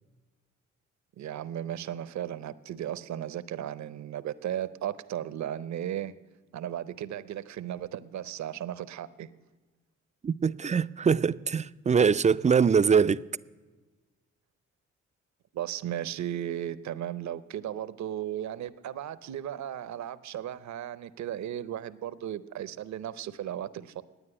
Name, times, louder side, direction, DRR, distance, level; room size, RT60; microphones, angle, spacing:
voice 1, 1.2-6.1 6.5-9.3 15.5-24.0, right 11 dB, 65° right, 0.6 m, -35 dB
voice 2, 10.2-13.2, right 6 dB, 25° right, 0.3 m, -23 dB
9.9 x 9.3 x 9.9 m
supercardioid pair, 55°, 30 cm